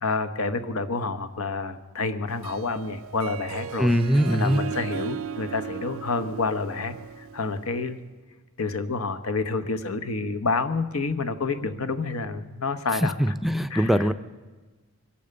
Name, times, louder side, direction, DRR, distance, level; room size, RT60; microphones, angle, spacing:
voice 1, 0.0-3.9 4.3-8.0 8.6-13.3 13.7-14.1, left 3 dB, 90° left, 10 dB, 1.1 m, -29 dB
Harp, 2.3-7.8, right 7 dB, 70° right, 0.4 m, -37 dB
voice 2, 3.8-4.6 13.2-14.1, equal, ahead, 10 dB, 0.4 m, -21 dB
22.5 x 8.6 x 6.8 m, 1.3 s
head